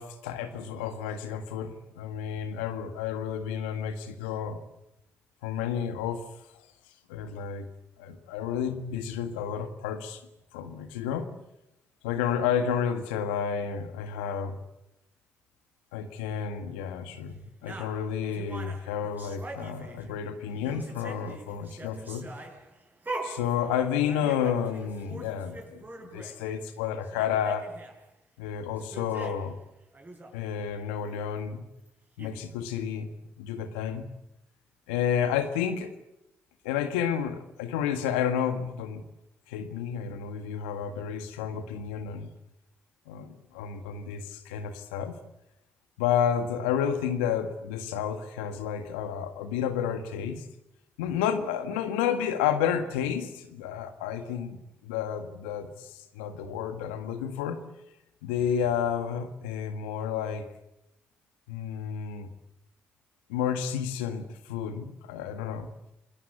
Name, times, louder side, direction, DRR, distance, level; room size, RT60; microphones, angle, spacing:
voice 1, 0.0-4.6 5.4-6.2 7.1-7.7 8.0-10.2 10.5-11.3 12.0-14.6 15.9-22.3 23.2-25.8 26.1-27.6 28.4-29.5 30.3-31.7 32.2-33.1 33.4-34.1 34.9-35.9 36.6-39.0 39.5-42.3 43.1-45.1 46.0-50.4 51.0-57.6 58.2-60.5 61.5-62.3 63.3-65.7, left 8 dB, 85° left, 9 dB, 1.7 m, -31 dB
sound 1, 17.6-20.2 20.5-26.4 26.8-26.9 27.0-28.0 28.7-29.6 29.9-30.3 31.9-32.0 32.2-32.3, right 2 dB, 30° right, 7.2 m, -42 dB
27.5 x 19.5 x 8.2 m, 0.86 s
hypercardioid pair, 40°, 6 cm